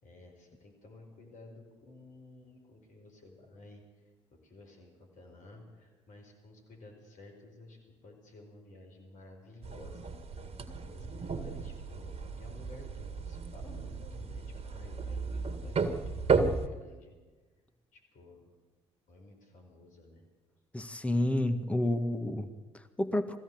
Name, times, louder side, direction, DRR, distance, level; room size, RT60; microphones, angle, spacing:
voice 1, 0.0-3.8 4.4-17.1 17.9-18.5 19.1-20.2, left 2 dB, 60° left, 2 dB, 4.9 m, -54 dB
sound 1, 9.6-16.7, right 5 dB, 40° right, 2.0 m, -34 dB
voice 2, 20.7-23.4, left 1 dB, 10° left, 8 dB, 1.7 m, -30 dB
22.0 x 15.5 x 8.0 m, 1.3 s
hypercardioid pair, 50°, 15 cm